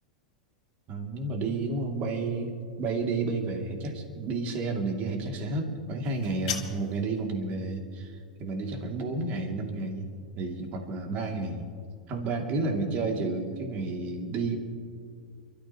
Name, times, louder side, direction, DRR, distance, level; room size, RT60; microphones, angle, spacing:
voice 1, 0.9-2.5 2.8-10.1 10.3-11.7 12.1-14.6, right 3 dB, 40° right, 2 dB, 2.8 m, -31 dB
sound 1, 6.0-7.1, left 10 dB, 60° left, 2.1 m, -36 dB
29.0 x 13.5 x 3.1 m, 2.2 s
figure-of-eight pair, 90°, 4 cm